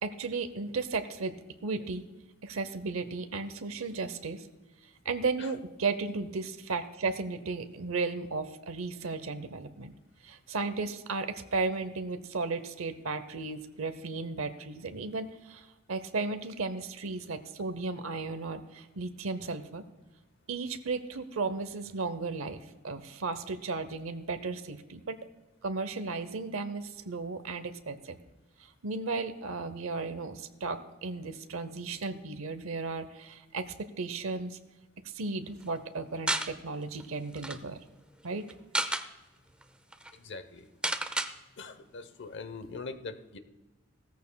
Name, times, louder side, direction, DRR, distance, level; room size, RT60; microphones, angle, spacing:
voice 1, 0.0-1.4 1.6-2.0 2.4-4.5 5.0-9.9 10.2-19.8 20.5-25.2 25.6-28.2 28.8-34.6 35.1-37.8 38.2-38.5, right 3 dB, 75° right, 10 dB, 0.7 m, -35 dB
sound 1, 36.3-36.5 37.0-37.1 37.3-37.6 38.5-39.1 39.6-39.7 39.9-40.1 40.8-41.3, right 1 dB, 5° right, 0.5 m, -31 dB
voice 2, 40.1-40.7 41.6-43.4, left 4 dB, 60° left, 10 dB, 0.8 m, -42 dB
16.5 x 14.0 x 2.3 m, 1.1 s
head